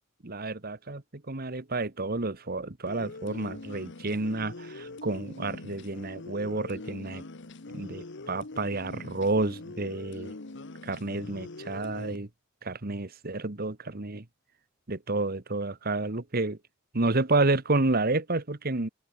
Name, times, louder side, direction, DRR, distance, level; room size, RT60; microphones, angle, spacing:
voice 1, 0.2-7.2 7.7-10.3 10.8-12.3 12.6-14.2 14.9-16.6 16.9-18.9, right 2 dB, 45° right, 1.4 m, -30 dB
sound 1, 2.9-12.2, left 2 dB, 60° left, 1.2 m, -43 dB
head